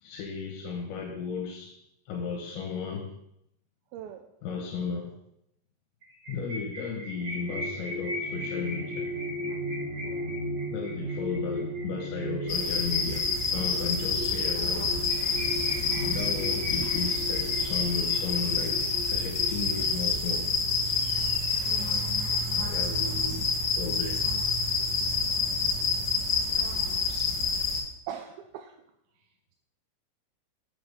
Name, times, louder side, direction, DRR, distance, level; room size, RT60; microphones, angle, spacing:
voice 1, 0.0-1.8 2.1-3.1 4.4-5.2 6.3-9.1 10.7-15.0 16.0-20.5 21.1-22.3 22.5-23.5 23.8-24.2 27.3-27.4, left 5 dB, 80° left, 0 dB, 3.5 m, -35 dB
voice 2, 3.9-4.2 10.0-10.3 21.7-22.1 28.1-28.8, right 9 dB, 85° right, 4 dB, 2.9 m, -41 dB
sound 1, 6.0-14.0 14.3-14.4 14.7-14.8 15.0-18.2, left 1 dB, 40° right, 2.0 m, -40 dB
sound 2, 7.1-19.8, equal, 25° left, 1.8 m, -36 dB
sound 3, 12.5-27.8, left 4 dB, 60° left, 1.1 m, -28 dB
7.6 x 7.3 x 6.6 m, 0.79 s
omnidirectional pair, 5.2 m